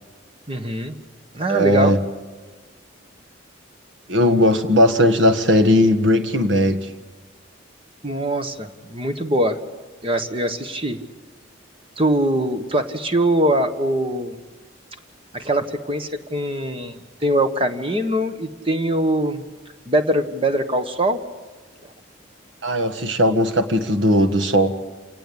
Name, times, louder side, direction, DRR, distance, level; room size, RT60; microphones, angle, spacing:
voice 1, 0.5-1.0 1.3-1.9 8.0-9.6 10.0-11.0 12.0-14.4 15.3-19.4 19.9-21.2, right 1 dB, 30° right, 8 dB, 1.5 m, -22 dB
voice 2, 1.5-2.0 4.1-6.9 22.6-24.8, equal, 70° right, 9 dB, 1.7 m, -17 dB
27.5 x 18.0 x 8.8 m, 1.3 s
head